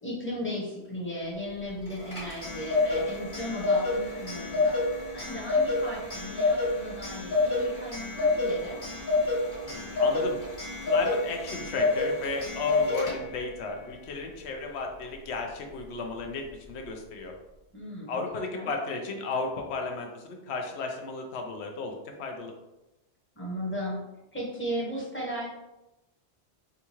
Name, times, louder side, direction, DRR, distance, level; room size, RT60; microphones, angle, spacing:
voice 1, 0.0-4.8 5.1-8.8 17.7-18.2 18.5-18.7 23.3-24.0 24.3-25.5, equal, 10° left, -4 dB, 0.8 m, -36 dB
Clock, 1.9-13.5, left 3 dB, 35° left, 1.5 m, -28 dB
voice 2, 9.6-10.4 10.8-17.3 18.1-22.5, left 3 dB, 85° left, 2 dB, 0.9 m, -34 dB
3.9 x 2.4 x 2.9 m, 0.96 s
omnidirectional pair, 1.1 m